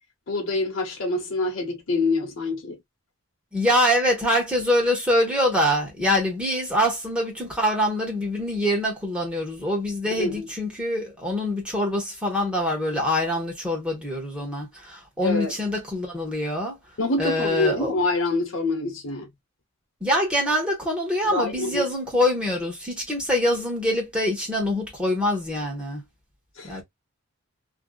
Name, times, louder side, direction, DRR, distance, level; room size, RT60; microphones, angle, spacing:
voice 1, 0.3-2.8 10.2-10.5 15.2-15.5 17.0-19.3 21.2-21.8 26.6-26.8, left 2 dB, 60° left, 1.0 m, -26 dB
voice 2, 3.5-16.8 17.2-17.9 20.0-26.0 26.6-26.8, left 1 dB, 5° right, 1.1 m, -24 dB
2.7 x 2.3 x 2.2 m
head